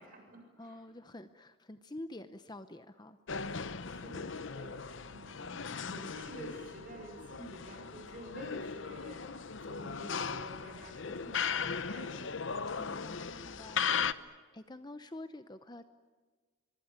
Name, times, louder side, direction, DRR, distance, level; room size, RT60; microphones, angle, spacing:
voice 1, 0.0-0.8 3.8-12.5, right 1 dB, 40° right, 3 dB, 7.5 m, -50 dB
voice 2, 0.6-3.2 12.8-14.2 14.5-15.8, left 1 dB, 20° left, 10 dB, 0.8 m, -47 dB
sound 1, 3.3-14.1, left 6 dB, 60° left, 0.8 m, -37 dB
25.5 x 23.0 x 9.6 m, 1.4 s
head